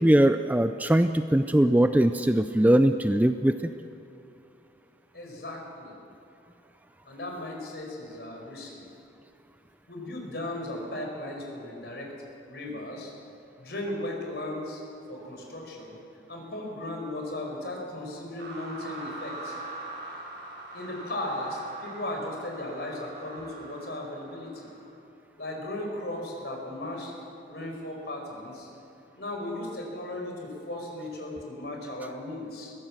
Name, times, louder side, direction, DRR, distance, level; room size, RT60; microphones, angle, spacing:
voice 1, 0.0-3.6, right 1 dB, 10° right, 9 dB, 0.4 m, -21 dB
voice 2, 5.1-5.9 7.0-8.7 9.9-12.1 12.5-13.1 13.6-14.8 15.1-16.0 16.3-19.6 20.7-24.7 25.4-27.1 27.5-28.7 29.2-32.7, left 1 dB, 65° left, 1 dB, 4.9 m, -36 dB
sound 1, 18.4-24.8, right 2 dB, 70° right, 6.1 m, -42 dB
22.0 x 16.0 x 7.5 m, 2.8 s
head